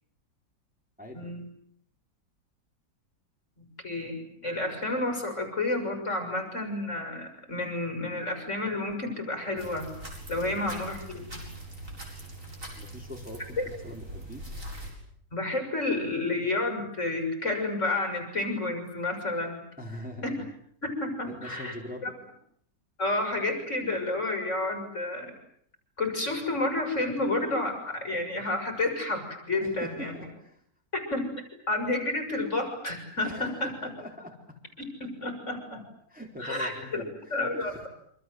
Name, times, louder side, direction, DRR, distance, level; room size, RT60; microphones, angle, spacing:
voice 1, 1.1-1.5 3.6-9.9 10.3-11.4 13.6-13.7 15.3-19.6 20.3-20.4 20.8-21.8 22.0-22.1 23.0-25.3 26.0-30.2 30.9-31.3 31.7-33.9 34.8-35.8 36.4-37.0 37.3-37.9, left 2 dB, 40° left, 5 dB, 6.7 m, -30 dB
sound 1, 9.6-14.9, right 1 dB, 45° right, 8.1 m, -42 dB
voice 2, 10.4-10.8 12.8-14.4 19.8-20.4 21.2-22.1 29.6-30.6 33.2-34.6 36.1-37.9, equal, 5° right, 0 dB, 4.2 m, -42 dB
28.0 x 26.0 x 7.9 m, 0.68 s
omnidirectional pair, 2.0 m